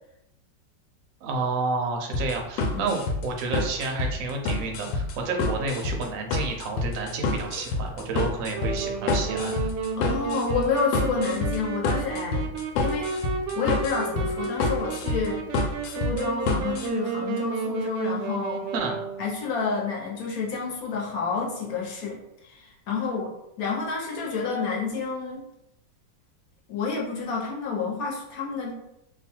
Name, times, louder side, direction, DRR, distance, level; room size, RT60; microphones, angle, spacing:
voice 1, 1.2-9.6 18.7-19.0, right 3 dB, 65° right, 2 dB, 0.9 m, -30 dB
sound 1, 2.1-16.9, left 3 dB, 85° left, 1.3 m, -28 dB
Wind instrument woodwind instrument, 8.5-19.4, right 5 dB, 85° right, 1.3 m, -32 dB
voice 2, 9.9-13.1 13.5-18.6 19.2-25.4 26.7-28.7, left 5 dB, 60° left, -1 dB, 1.2 m, -29 dB
3.1 x 2.3 x 4.3 m, 0.82 s
omnidirectional pair, 2.0 m